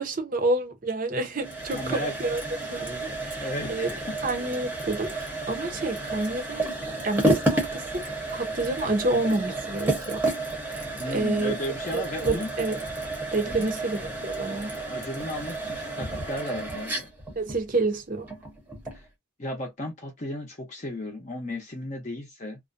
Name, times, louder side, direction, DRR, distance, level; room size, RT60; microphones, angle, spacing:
voice 1, 0.0-3.9 4.2-6.7 7.0-10.3 10.7-11.5 11.9-12.8 13.3-14.8 17.4-18.3, right 2 dB, 40° right, 0.6 m, -29 dB
sound 1, 1.4-19.1, right 2 dB, 10° right, 0.7 m, -31 dB
voice 2, 1.7-2.1 3.4-4.1 11.0-12.5 13.5-13.7 14.9-17.1 18.9-19.0 19.4-22.6, left 1 dB, 35° left, 0.6 m, -34 dB
2.4 x 2.1 x 2.4 m
head